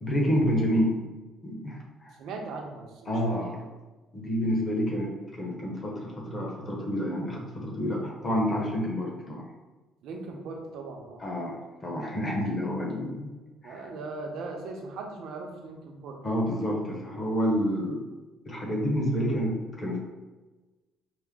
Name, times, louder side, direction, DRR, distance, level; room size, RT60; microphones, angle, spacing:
voice 1, 0.0-1.0 1.4-2.1 3.1-3.6 4.1-9.5 11.2-13.3 13.6-13.9 16.2-18.0 18.5-20.0, equal, 25° left, -1 dB, 0.9 m, -29 dB
voice 2, 2.2-3.6 10.0-11.2 13.6-16.2, right 3 dB, 65° right, 2 dB, 0.7 m, -39 dB
4.9 x 2.1 x 3.6 m, 1.2 s
cardioid pair, 155°, 0 cm